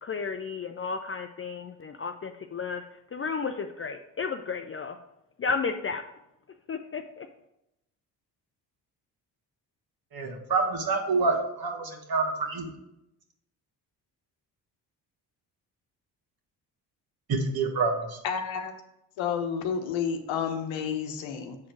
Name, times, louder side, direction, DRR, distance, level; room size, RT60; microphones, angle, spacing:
voice 1, 0.0-2.8 3.1-5.0 5.4-6.0 6.7-7.3, left 5 dB, 30° left, 6 dB, 0.5 m, -33 dB
voice 2, 10.1-12.7 17.3-18.2, right 4 dB, 50° right, 2 dB, 1.7 m, -27 dB
voice 3, 18.2-18.7 19.2-21.6, left 7 dB, 75° left, 6 dB, 1.0 m, -30 dB
7.3 x 4.3 x 4.6 m, 0.86 s
hypercardioid pair, 50°, 47 cm